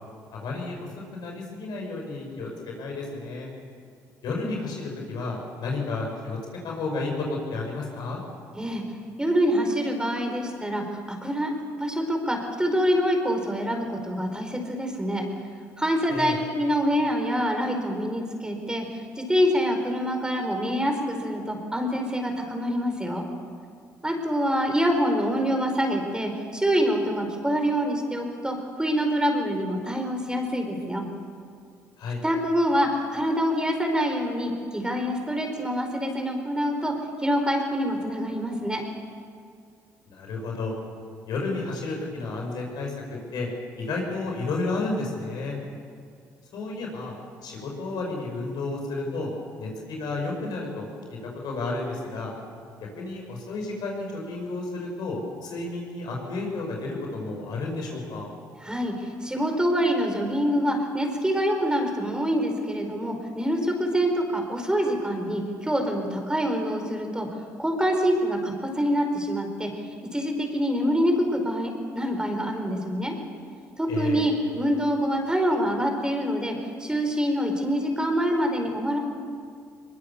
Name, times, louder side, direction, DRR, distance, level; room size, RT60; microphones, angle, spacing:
voice 1, 0.3-3.5 4.2-6.4 6.6-8.2 16.1-16.4 32.0-32.2 40.1-40.7 41.3-42.9 43.3-43.5 43.8-45.6 46.5-47.1 47.4-49.3 49.6-50.8 51.1-52.3 52.8-58.3 73.9-74.3, left 3 dB, 65° left, 0 dB, 5.9 m, -32 dB
voice 2, 9.2-11.5 11.8-15.2 15.8-23.3 24.0-31.1 32.2-36.9 37.2-38.8 58.6-67.3 67.6-69.7 70.1-73.1 73.8-79.0, equal, 10° right, 4 dB, 4.8 m, -25 dB
22.0 x 21.5 x 7.0 m, 2.2 s
hypercardioid pair, 55°, 8 cm